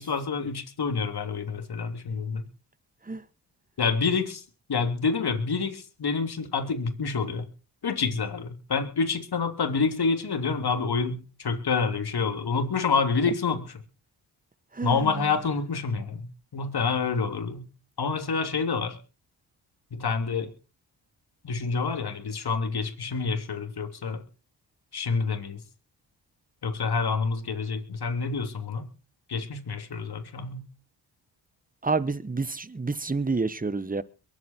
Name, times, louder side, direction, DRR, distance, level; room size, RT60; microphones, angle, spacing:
voice 1, 0.0-2.4 3.8-4.4 4.7-7.5 7.8-13.8 14.8-17.7 18.0-19.0 19.9-20.5 21.4-24.2 24.9-25.6 26.6-28.9 29.3-30.7, left 5 dB, 55° left, 3.2 m, -28 dB
voice 2, 31.8-34.0, right 3 dB, 20° right, 1.3 m, -28 dB
22.5 x 8.6 x 4.5 m
supercardioid pair, 50°, 45 cm